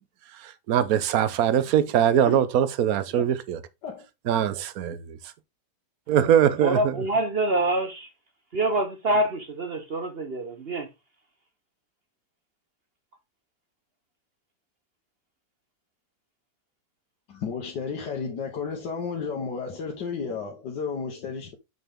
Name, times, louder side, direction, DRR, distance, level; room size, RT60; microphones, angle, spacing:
voice 1, 0.4-3.6 4.3-5.2 6.1-7.0, right 9 dB, 65° right, 1.1 m, -22 dB
voice 2, 6.6-8.1 8.5-10.9, right 1 dB, 45° right, 0.9 m, -26 dB
voice 3, 17.3-21.6, left 5 dB, 80° left, 1.8 m, -32 dB
6.7 x 6.0 x 3.6 m
omnidirectional pair, 1.8 m